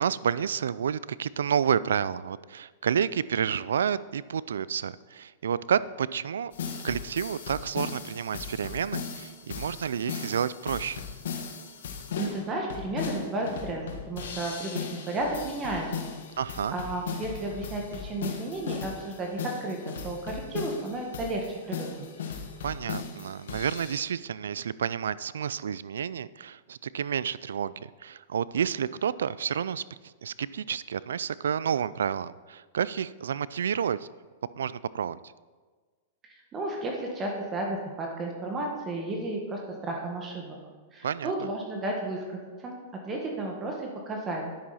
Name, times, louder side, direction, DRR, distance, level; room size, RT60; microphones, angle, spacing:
voice 1, 0.0-6.5 6.8-11.0 16.4-16.7 22.6-34.1 34.6-35.3 41.0-41.5, right 8 dB, 90° right, 18 dB, 0.3 m, -30 dB
sound 1, 6.5-24.0, left 6 dB, 80° left, 1.3 m, -38 dB
voice 2, 12.2-16.2 16.7-22.1 36.5-40.6 40.9-42.8 43.0-44.4, right 2 dB, 25° right, 0 dB, 1.6 m, -33 dB
10.0 x 7.7 x 4.2 m, 1.4 s
hypercardioid pair, 130°, 0 cm